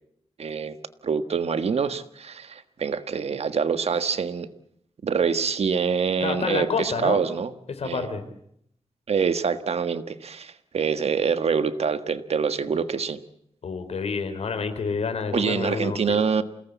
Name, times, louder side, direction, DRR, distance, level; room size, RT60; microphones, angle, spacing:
voice 1, 0.4-0.8 1.0-4.5 5.0-7.5 7.8-8.1 9.1-13.2 15.3-16.4, right 6 dB, 80° right, 11 dB, 1.5 m, -25 dB
voice 2, 6.2-7.2 7.7-8.2 13.6-16.2, left 5 dB, 90° left, 9 dB, 3.8 m, -28 dB
28.0 x 18.5 x 8.3 m, 0.72 s
wide cardioid pair, 85°, 11 cm